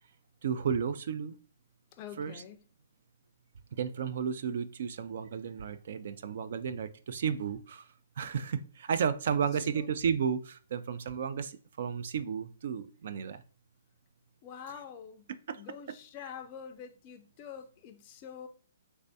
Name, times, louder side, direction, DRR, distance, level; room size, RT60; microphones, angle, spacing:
voice 1, 0.4-1.4 2.2-2.4 3.7-13.4 15.5-15.6, right 7 dB, 60° right, 0.3 m, -33 dB
voice 2, 1.9-2.6 9.7-9.9 14.4-15.3 15.6-18.5, left 8 dB, 30° left, 0.4 m, -46 dB
3.3 x 3.3 x 2.6 m
hypercardioid pair, 150°, 0 cm